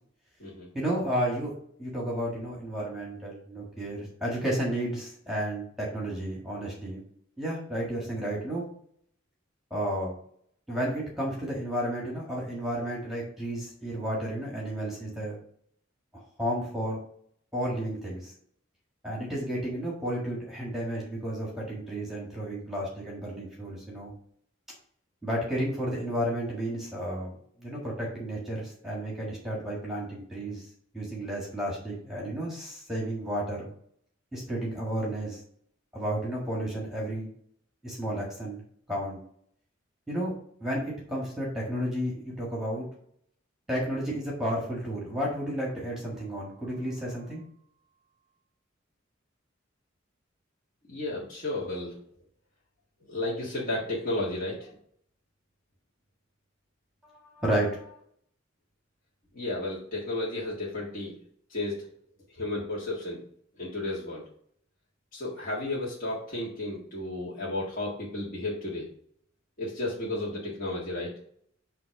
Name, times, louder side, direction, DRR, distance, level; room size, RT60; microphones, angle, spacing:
voice 1, 0.7-1.5 1.8-7.0 7.4-8.7 9.7-10.1 10.7-15.4 16.1-17.0 17.5-18.3 19.0-24.1 25.2-30.6 30.9-33.7 34.3-35.4 35.9-37.3 37.8-38.6 38.9-39.2 40.1-40.3 40.6-42.9 43.7-47.4 57.0-58.0, right 1 dB, ahead, -4 dB, 1.7 m, -32 dB
voice 2, 50.9-52.0 53.1-54.7 59.3-61.1 61.5-61.8 62.3-63.2 63.6-64.2 65.1-68.9 69.6-71.1, left 2 dB, 45° left, -7 dB, 1.7 m, -33 dB
7.5 x 2.9 x 5.8 m, 0.63 s
head